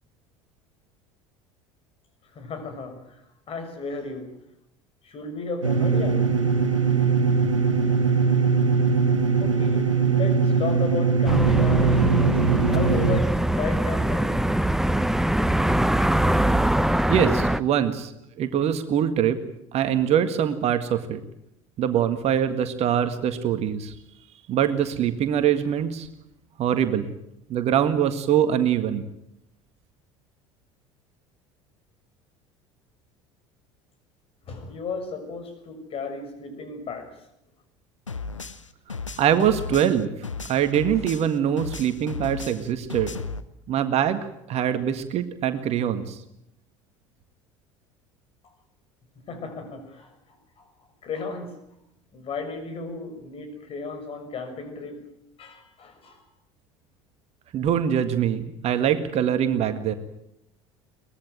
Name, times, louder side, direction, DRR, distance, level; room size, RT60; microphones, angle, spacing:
voice 1, 2.3-3.2 3.5-4.3 5.0-6.3 9.4-14.4 34.5-37.1 49.3-50.1 50.6-50.7 51.0-51.6 52.1-55.0 55.4-56.2, left 4 dB, 35° left, 6 dB, 6.5 m, -34 dB
sound 1, 5.6-13.2, right 5 dB, 80° right, 2.0 m, -21 dB
sound 2, 11.2-17.6, right 1 dB, 5° right, 0.8 m, -22 dB
voice 2, 17.1-18.1 18.4-19.4 19.7-21.2 21.8-23.9 24.5-26.1 26.6-27.1 27.5-29.1 39.2-40.1 40.4-43.2 43.7-44.2 44.5-46.2 57.5-59.9, right 9 dB, 40° right, 9 dB, 1.9 m, -23 dB
sound 3, 38.1-41.3 41.6-43.4, left 4 dB, 85° left, 1.0 m, -34 dB
23.0 x 20.0 x 9.2 m, 0.81 s
figure-of-eight pair, 65°, 16 cm